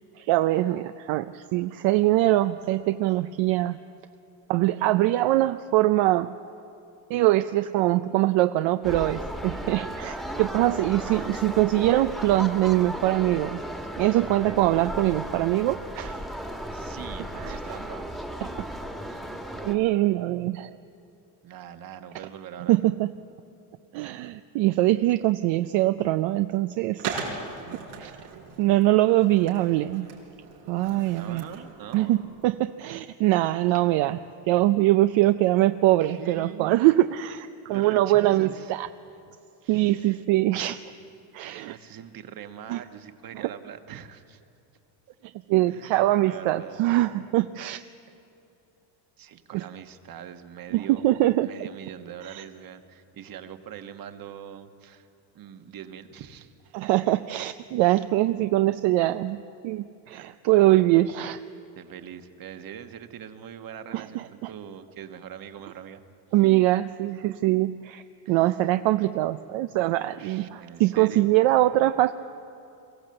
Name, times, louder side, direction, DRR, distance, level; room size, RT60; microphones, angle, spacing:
voice 1, 0.2-3.8 4.5-6.4 7.1-13.6 14.0-16.3 17.4-17.6 18.4-18.5 19.6-20.7 22.7-23.1 23.9-27.3 28.0-28.1 28.6-30.1 30.7-31.4 31.9-38.9 39.7-40.8 41.3-41.8 42.7-42.8 45.5-47.8 49.5-49.6 50.7-51.5 52.2-52.4 56.7-61.4 63.9-64.5 66.3-72.1, right 16 dB, 65° right, 11 dB, 0.7 m, -23 dB
sound 1, 8.8-19.8, equal, ahead, 1.5 m, -35 dB
voice 2, 11.0-11.4 16.3-18.3 21.4-22.7 31.1-32.1 36.0-36.8 37.7-38.7 39.6-40.2 41.6-44.4 45.1-45.2 45.7-46.8 49.2-51.0 51.4-55.1 55.3-56.5 60.1-60.8 61.7-66.0 68.2-68.6 70.2-71.3, right 9 dB, 45° right, 9 dB, 1.4 m, -43 dB
Skateboard, 27.0-32.5, right 5 dB, 90° right, 4.8 m, -39 dB
22.5 x 15.5 x 7.7 m, 2.8 s
cardioid pair, 110°, 49 cm